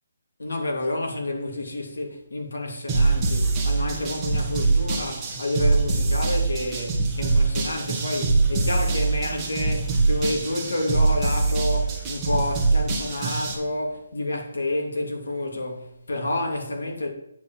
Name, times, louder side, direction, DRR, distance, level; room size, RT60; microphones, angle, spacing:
voice 1, 0.4-17.1, left 1 dB, 85° left, 3.2 m, -29 dB
sound 1, 2.9-13.5, right 3 dB, 10° right, 1.3 m, -23 dB
9.3 x 5.1 x 7.3 m
hypercardioid pair, 175°, 0 cm